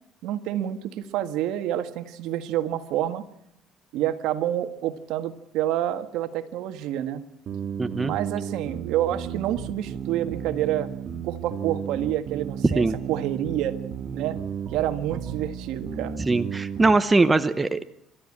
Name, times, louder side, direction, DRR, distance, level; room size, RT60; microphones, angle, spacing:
voice 1, 0.2-3.2 3.9-7.2 8.0-10.9 11.2-13.8 14.1-14.4 14.7-16.2, right 12 dB, 75° right, 9 dB, 1.7 m, -28 dB
sound 1, 7.5-16.9, right 7 dB, 45° right, 2.0 m, -34 dB
voice 2, 7.8-8.1 12.6-13.0 16.2-17.8, right 3 dB, 15° right, 10 dB, 0.9 m, -21 dB
28.5 x 13.0 x 8.7 m, 0.75 s
cardioid pair, 140°, 0 cm